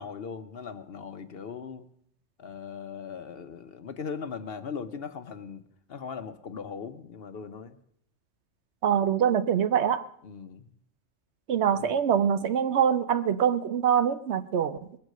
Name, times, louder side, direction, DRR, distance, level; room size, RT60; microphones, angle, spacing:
voice 1, 0.0-1.9 2.4-5.6 5.9-7.8 10.2-10.8 11.7-12.0, left 6 dB, 55° left, 10 dB, 0.9 m, -39 dB
voice 2, 8.8-10.0 11.5-15.0, right 8 dB, 65° right, 12 dB, 0.9 m, -24 dB
20.5 x 7.9 x 6.5 m, 0.69 s
omnidirectional pair, 1.3 m